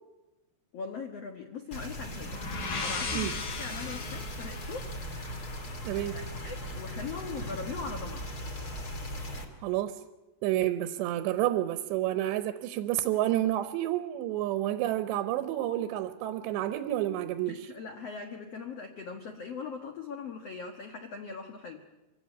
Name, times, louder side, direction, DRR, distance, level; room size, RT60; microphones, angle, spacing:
voice 1, 0.7-4.9 6.1-8.3 17.5-21.8, left 5 dB, 80° left, 5 dB, 1.4 m, -40 dB
sound 1, 1.7-9.4, equal, 30° left, 2.0 m, -39 dB
sound 2, 2.0-5.8, left 4 dB, 55° left, 4.4 m, -37 dB
voice 2, 5.8-6.2 9.6-10.0 10.4-17.6, right 13 dB, 80° right, 11 dB, 3.0 m, -29 dB
24.5 x 16.0 x 9.6 m, 1.1 s
omnidirectional pair, 5.2 m